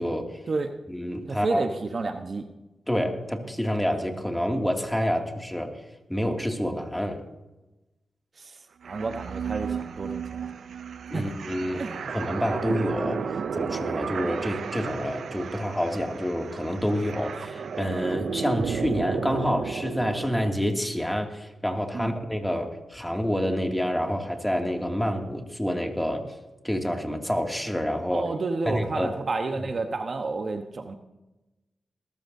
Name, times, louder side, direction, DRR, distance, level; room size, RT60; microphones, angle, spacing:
voice 1, 0.0-0.4 0.9-1.6 2.9-5.8 6.1-7.2 11.1-11.8 12.1-13.2 13.5-26.2 26.6-28.3 28.7-29.1, equal, 5° left, 3 dB, 2.5 m, -28 dB
voice 2, 1.3-2.5 8.4-10.5 11.1-11.3 11.7-12.2 21.9-22.2 28.1-31.0, right 3 dB, 55° right, 6 dB, 1.2 m, -31 dB
sound 1, 8.8-20.5, right 6 dB, 75° right, 0.6 m, -33 dB
20.5 x 14.0 x 2.8 m, 1.0 s
cardioid pair, 50°, 0 cm